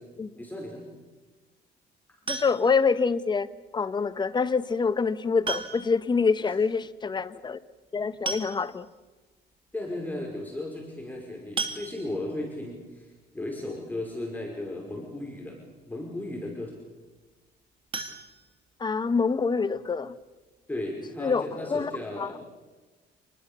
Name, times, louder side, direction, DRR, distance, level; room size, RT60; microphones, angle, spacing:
voice 1, 0.3-0.8 6.4-6.6 9.7-15.6 15.9-16.7 20.7-22.4, left 1 dB, 10° left, 0 dB, 5.2 m, -35 dB
voice 2, 2.3-3.5 3.7-7.6 7.9-8.9 18.8-20.1 21.2-21.9 22.2-22.3, left 5 dB, 25° left, 13 dB, 1.2 m, -26 dB
sound 1, 2.3-2.9 4.4-4.5 5.4-6.1 6.4-6.5 6.8-6.9 7.9-8.0 8.3-9.0 9.5-9.6 10.0-10.1 11.6-12.4 17.9-19.1 19.5-19.6 20.0-20.1 20.5-20.6, right 3 dB, 30° right, 2.6 m, -35 dB
28.0 x 20.5 x 7.0 m, 1.2 s
cardioid pair, 110°, 17 cm